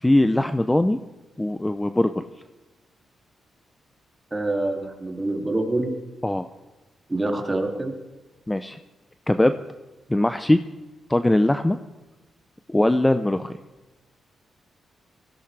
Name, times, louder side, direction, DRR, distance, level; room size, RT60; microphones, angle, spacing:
voice 1, 0.0-1.0 1.4-2.2 6.2-6.5 8.5-8.8 9.3-9.5 10.1-10.6 11.1-11.8 12.7-13.5, left 1 dB, 10° left, 9 dB, 0.5 m, -20 dB
voice 2, 4.3-5.9 7.1-7.9, right 2 dB, 20° right, 2 dB, 2.4 m, -26 dB
19.5 x 16.0 x 3.3 m, 1.1 s
cardioid pair, 80°, 0 cm